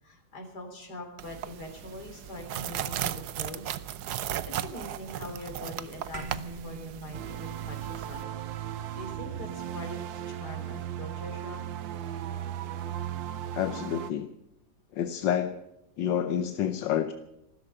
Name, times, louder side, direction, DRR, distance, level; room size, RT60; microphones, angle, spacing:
voice 1, 0.0-3.7 4.5-8.2 8.6-11.6, left 1 dB, 60° left, 3 dB, 3.9 m, -43 dB
sound 1, 1.2-8.2, right 11 dB, 70° right, 1.2 m, -36 dB
sound 2, 6.1-10.8, right 3 dB, 40° right, 1.5 m, -45 dB
sound 3, 7.1-14.1, right 10 dB, 85° right, 1.5 m, -36 dB
voice 2, 13.5-14.3 14.9-15.6 16.0-17.1, left 9 dB, 80° left, 9 dB, 1.5 m, -28 dB
15.0 x 13.5 x 6.7 m, 0.88 s
omnidirectional pair, 2.0 m